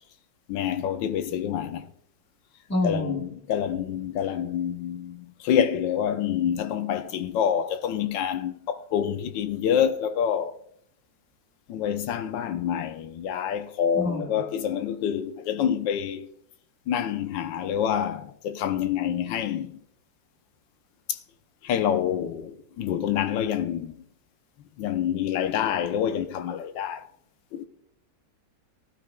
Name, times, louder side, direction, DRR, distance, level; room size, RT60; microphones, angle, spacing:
voice 1, 0.5-1.9 2.8-10.6 11.7-16.3 16.9-19.8 21.1-21.2 21.6-23.9 24.8-27.1 27.5-27.7, left 9 dB, 90° left, 1.4 m, -27 dB
voice 2, 2.7-3.2 14.0-14.4, left 1 dB, 10° left, 1.2 m, -27 dB
18.5 x 12.5 x 2.2 m
omnidirectional pair, 2.0 m